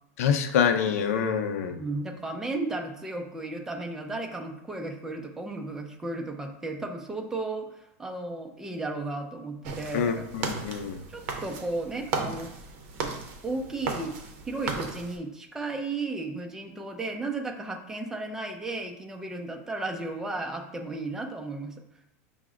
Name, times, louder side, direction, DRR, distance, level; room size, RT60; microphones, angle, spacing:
voice 1, 0.2-1.8 9.9-11.0, left 7 dB, 80° left, 5 dB, 0.5 m, -26 dB
voice 2, 1.7-10.3 11.1-12.5 13.4-14.1 14.5-21.8, right 2 dB, 5° right, 3 dB, 0.4 m, -34 dB
sound 1, 9.6-15.2, right 4 dB, 50° right, 0.7 m, -35 dB
5.8 x 2.0 x 3.6 m, 0.81 s
supercardioid pair, 160°, 8 cm